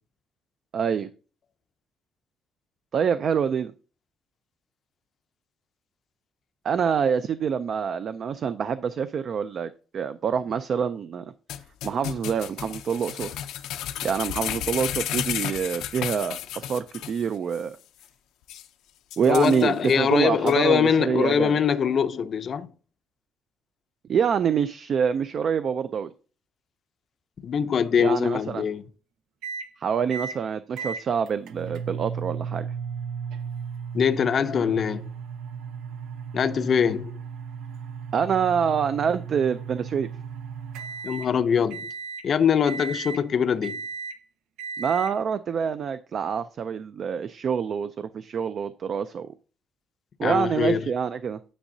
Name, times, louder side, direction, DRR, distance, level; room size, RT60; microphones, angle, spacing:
voice 1, 0.7-1.1 2.9-3.7 6.6-11.3 11.8-13.4 14.0-17.8 19.2-21.6 24.1-26.1 28.0-28.6 29.8-32.6 38.1-40.1 44.8-49.3 50.2-51.4, right 7 dB, 40° right, 0.3 m, -26 dB
sound 1, 11.5-17.2 17.5-17.6 18.0-18.1 18.5-18.6 19.1-19.9 20.5-20.6, left 11 dB, 85° left, 0.6 m, -33 dB
voice 2, 19.2-22.7 27.4-28.8 33.9-35.1 36.3-37.1 41.0-41.9 42.2-43.8 50.2-50.8, left 7 dB, 40° left, 0.5 m, -23 dB
sound 2, 29.4-29.7 30.1-30.4 30.8-41.3 41.7-42.3 42.7-43.2 43.6-44.2 44.6-45.1, right 6 dB, 90° right, 0.7 m, -35 dB
10.0 x 6.3 x 2.7 m
cardioid pair, 160°, 0 cm